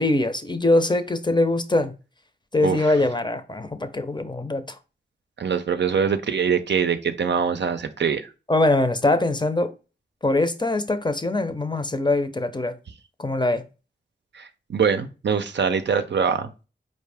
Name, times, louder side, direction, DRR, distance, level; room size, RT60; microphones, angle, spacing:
voice 1, 0.0-1.9 2.5-4.8 8.5-9.7 10.2-12.7 13.2-13.6, left 2 dB, 25° left, 0.6 m, -22 dB
voice 2, 2.6-2.9 5.4-8.3 14.3-16.5, right 6 dB, 65° right, 0.5 m, -23 dB
4.5 x 2.6 x 3.4 m
cardioid pair, 50°, 19 cm